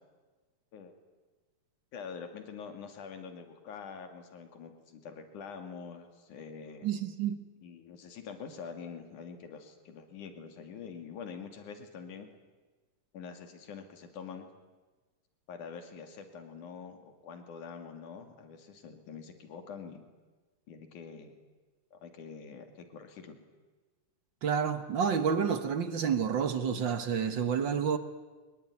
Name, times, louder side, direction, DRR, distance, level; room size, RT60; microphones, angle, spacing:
voice 1, 1.9-6.9 7.6-12.3 13.1-14.5 15.5-20.0 20.7-21.3 21.9-23.4, left 6 dB, 80° left, 7 dB, 3.9 m, -45 dB
voice 2, 6.8-7.4 24.4-28.0, right 7 dB, 55° right, 11 dB, 1.4 m, -29 dB
23.5 x 21.5 x 9.6 m, 1.3 s
omnidirectional pair, 3.5 m